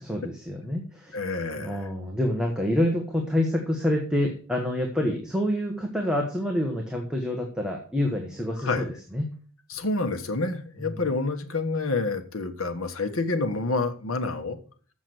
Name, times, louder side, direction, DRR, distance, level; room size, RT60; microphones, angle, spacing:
voice 1, 0.1-1.1 1.6-9.3, left 1 dB, 5° right, 1 dB, 1.2 m, -27 dB
voice 2, 1.1-1.9 8.6-8.9 9.7-14.6, left 3 dB, 80° left, 7 dB, 1.3 m, -28 dB
7.4 x 6.1 x 7.8 m, 0.42 s
head